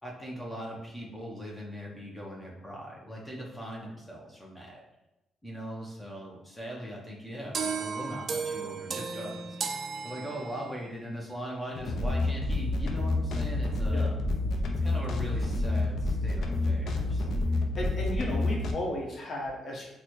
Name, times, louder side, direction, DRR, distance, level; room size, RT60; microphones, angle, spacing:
voice 1, 0.0-4.8 5.4-9.6 10.0-14.1 14.8-17.3, equal, 10° left, -3 dB, 0.7 m, -40 dB
sound 1, 7.5-10.8, right 5 dB, 50° right, 0.3 m, -34 dB
sound 2, 11.8-18.7, left 2 dB, 70° left, 0.4 m, -28 dB
voice 2, 17.8-19.9, left 1 dB, 50° left, -1 dB, 0.9 m, -34 dB
4.1 x 2.1 x 2.9 m, 0.95 s
cardioid pair, 90°, 0 cm